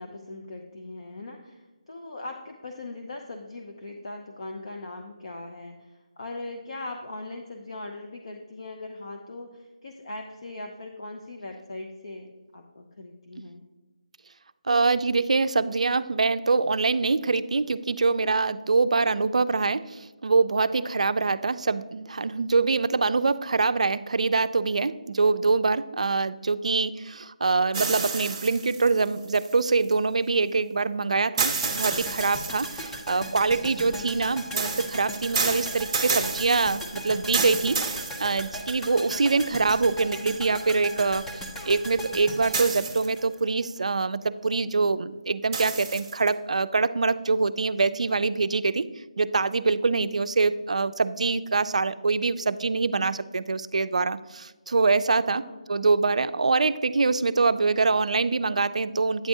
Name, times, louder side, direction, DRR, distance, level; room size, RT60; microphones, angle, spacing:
voice 1, 0.0-13.6 20.7-20.9 33.8-34.1 55.0-55.6, left 2 dB, 50° left, 4 dB, 0.6 m, -40 dB
voice 2, 14.7-48.9 49.2-55.4 55.7-59.3, right 4 dB, 65° right, 13 dB, 0.4 m, -24 dB
sound 1, 27.7-29.9 31.4-33.0 34.6-38.8 39.5-39.6 42.5-43.3 45.5-46.3, right 4 dB, 20° right, 0.9 m, -30 dB
sound 2, 31.6-43.8 44.1-44.2, equal, 5° left, 0.4 m, -38 dB
9.1 x 7.9 x 2.7 m, 1.2 s
figure-of-eight pair, 170°, 4 cm